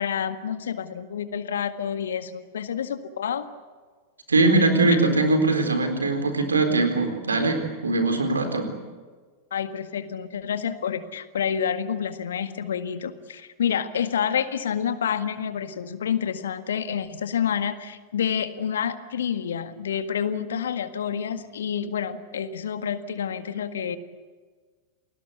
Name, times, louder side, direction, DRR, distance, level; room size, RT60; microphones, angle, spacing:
voice 1, 0.0-3.5 4.9-5.0 9.5-24.0, left 8 dB, 65° left, 11 dB, 1.7 m, -28 dB
voice 2, 4.3-8.7, right 2 dB, 75° right, 7 dB, 4.1 m, -21 dB
29.5 x 20.0 x 8.3 m, 1.5 s
figure-of-eight pair, 90°, 0 cm